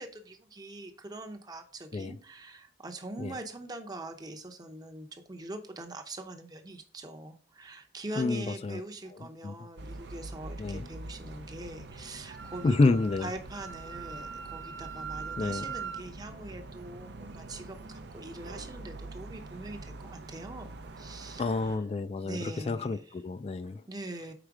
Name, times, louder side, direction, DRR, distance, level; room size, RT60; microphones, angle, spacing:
voice 1, 0.0-21.8 22.2-23.0 23.9-24.3, right 2 dB, 20° right, 0.7 m, -43 dB
voice 2, 8.2-8.8 9.4-9.5 10.6-10.9 12.6-13.3 15.4-15.6 21.4-23.8, left 3 dB, 35° left, 0.3 m, -29 dB
sound 1, 9.8-21.8, right 2 dB, 65° right, 0.5 m, -45 dB
Wind instrument woodwind instrument, 12.3-16.0, right 6 dB, 90° right, 1.0 m, -41 dB
5.0 x 4.3 x 4.7 m
head